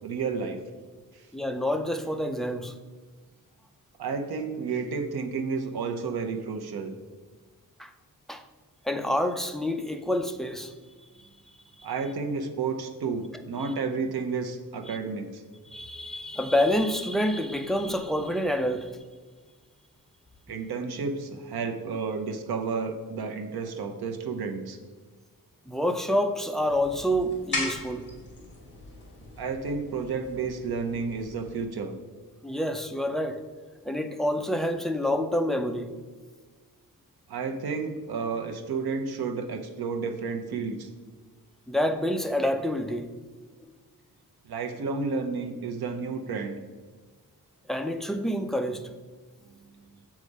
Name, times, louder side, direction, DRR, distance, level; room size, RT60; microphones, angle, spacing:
voice 1, 0.0-0.6 4.0-6.9 11.8-15.4 20.5-24.8 29.4-31.9 37.3-40.9 44.5-46.6, right 5 dB, 90° right, 0.9 m, -31 dB
voice 2, 1.3-2.7 7.8-7.9 8.3-8.4 8.8-10.7 14.9-15.0 15.5-18.9 25.7-28.1 32.4-33.4 33.8-35.9 41.7-43.1 47.7-48.8, equal, ahead, 0.3 m, -27 dB
sound 1, 26.6-31.6, left 2 dB, 30° left, 2.2 m, -39 dB
7.5 x 4.9 x 5.3 m
wide cardioid pair, 160°, 37 cm